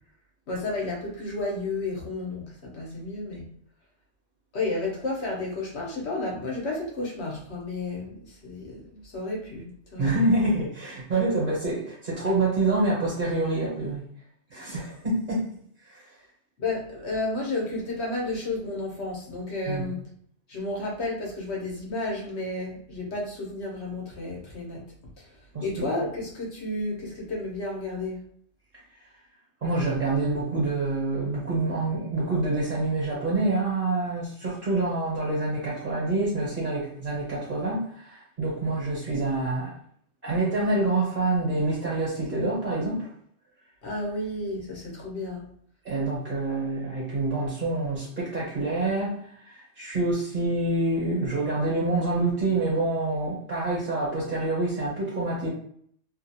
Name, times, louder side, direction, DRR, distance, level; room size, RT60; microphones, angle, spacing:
voice 1, 0.5-3.4 4.5-10.1 16.6-20.0 20.5-24.8 25.2-25.3 25.6-28.2 43.8-45.5, left 2 dB, 70° left, -2 dB, 1.3 m, -32 dB
voice 2, 10.0-14.0 14.5-15.5 15.8-16.1 19.7-19.9 25.5-25.9 29.6-39.7 40.2-43.1 45.8-55.5, right 2 dB, 50° right, -6 dB, 1.2 m, -27 dB
2.9 x 2.4 x 2.7 m, 0.63 s
omnidirectional pair, 1.2 m